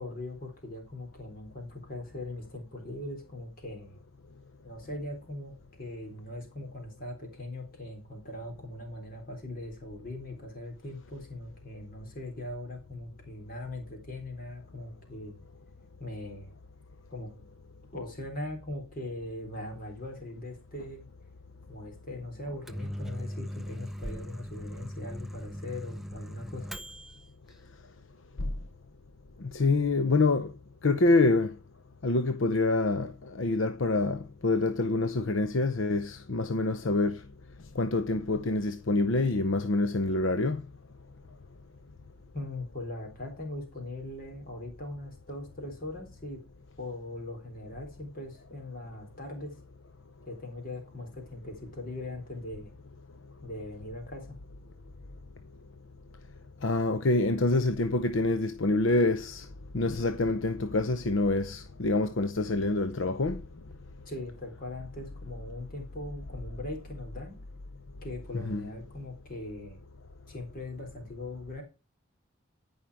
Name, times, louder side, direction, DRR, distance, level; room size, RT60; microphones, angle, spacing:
voice 1, 0.0-4.0 4.6-15.4 16.0-16.5 17.1-17.3 17.9-21.1 21.7-26.7 42.3-46.4 46.8-49.6 50.3-52.7 53.4-54.4 64.1-67.4 68.0-69.8 70.3-71.6, left 1 dB, 40° left, 3.8 m, -40 dB
Microwave oven, 22.4-27.2, equal, ahead, 0.5 m, -39 dB
voice 2, 29.4-30.5 30.8-31.5 32.0-37.2 37.7-40.6 56.6-59.5 59.7-63.4 68.3-68.7, left 2 dB, 65° left, 0.7 m, -26 dB
14.5 x 5.6 x 4.8 m
head